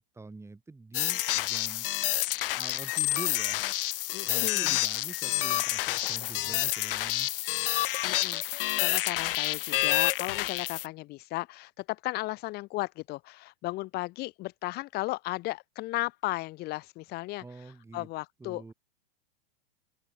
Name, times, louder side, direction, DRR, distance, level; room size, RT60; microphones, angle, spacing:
voice 1, 0.0-1.9 2.5-3.6 4.2-7.3 17.4-18.1 18.4-18.7, right 3 dB, 10° right, 4.0 m, -45 dB
sound 1, 0.9-10.9, left 16 dB, 65° left, 0.9 m, -29 dB
voice 2, 4.1-4.8 8.0-17.4 17.9-18.6, left 20 dB, 35° left, 0.7 m, -35 dB
open air
hypercardioid pair, 115°, 30 cm